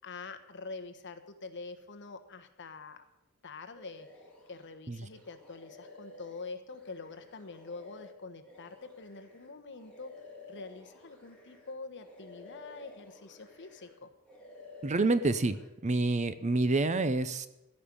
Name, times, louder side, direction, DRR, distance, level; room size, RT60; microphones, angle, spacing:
voice 1, 0.0-3.0 3.4-4.1 4.5-10.1 10.5-14.1, left 3 dB, 55° left, 8 dB, 1.2 m, -45 dB
sound 1, 3.7-4.7 5.1-11.7 12.0-14.0 14.2-15.7, left 3 dB, 5° left, 2.9 m, -53 dB
voice 2, 14.8-15.6 15.8-17.5, right 2 dB, 30° right, 13 dB, 0.6 m, -27 dB
15.5 x 5.3 x 9.7 m, 0.92 s
head